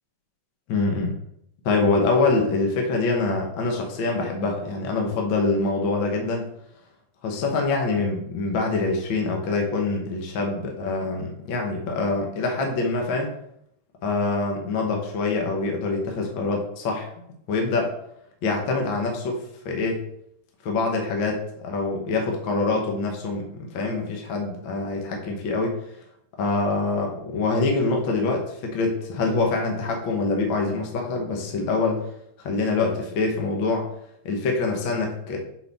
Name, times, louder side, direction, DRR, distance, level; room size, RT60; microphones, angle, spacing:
voice 1, 0.7-1.1 1.6-6.5 7.2-13.3 14.0-17.1 17.5-17.9 18.4-19.4 19.6-20.0 20.6-21.3 21.6-25.7 26.4-32.0 32.4-33.9 34.2-35.4, left 3 dB, 55° left, 1 dB, 1.4 m, -25 dB
8.1 x 5.5 x 3.5 m, 0.74 s
omnidirectional pair, 3.4 m